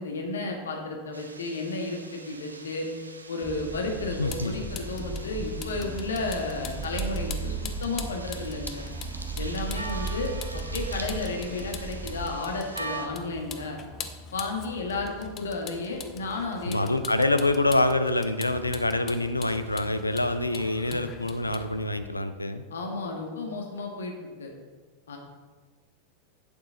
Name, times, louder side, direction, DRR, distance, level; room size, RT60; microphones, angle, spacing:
voice 1, 0.0-2.8 3.3-8.8 9.4-10.3 10.7-13.8 14.3-16.9 22.7-24.5 25.1-25.2, left 3 dB, 65° left, 2 dB, 1.6 m, -33 dB
sound 1, 1.1-13.1, right 3 dB, 80° right, 0.8 m, -43 dB
sound 2, 3.4-12.4, right 4 dB, 20° right, 0.6 m, -36 dB
Vehicle, 4.1-22.1, left 6 dB, 30° left, 0.8 m, -43 dB
voice 2, 4.2-4.5 16.7-22.6, left 2 dB, 85° left, 10 dB, 0.5 m, -26 dB
8.5 x 7.5 x 3.9 m, 1.4 s
figure-of-eight pair, 90°, 0 cm